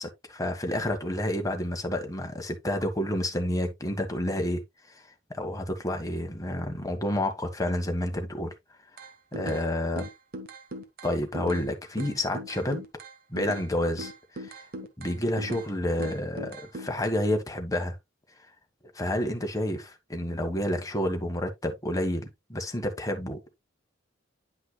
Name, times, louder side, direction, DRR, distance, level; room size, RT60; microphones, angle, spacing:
voice 1, 0.0-4.6 5.3-8.5 9.3-10.0 11.0-12.8 13.3-14.1 14.5-14.6 15.0-18.0 18.9-23.5, left 1 dB, 20° left, 1.4 m, -29 dB
sound 1, 9.0-9.7 10.0-11.7 12.0-13.7 14.0-15.7 16.0-16.9, right 1 dB, 50° right, 1.3 m, -39 dB
9.9 x 5.7 x 2.2 m
head